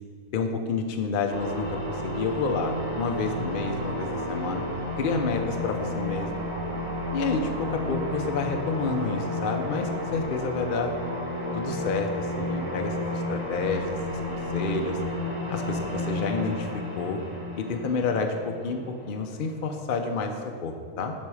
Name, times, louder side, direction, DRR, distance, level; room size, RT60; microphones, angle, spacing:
voice 1, 0.3-4.6 5.0-6.4 7.1-10.9 11.5-15.0 15.5-16.7 17.0-17.2 17.6-20.3 20.6-21.1, left 4 dB, 50° left, 4 dB, 0.6 m, -29 dB
sound 1, 1.3-19.6, left 1 dB, 55° right, 2.0 m, -32 dB
12.0 x 4.3 x 4.8 m, 2.2 s
omnidirectional pair, 1.6 m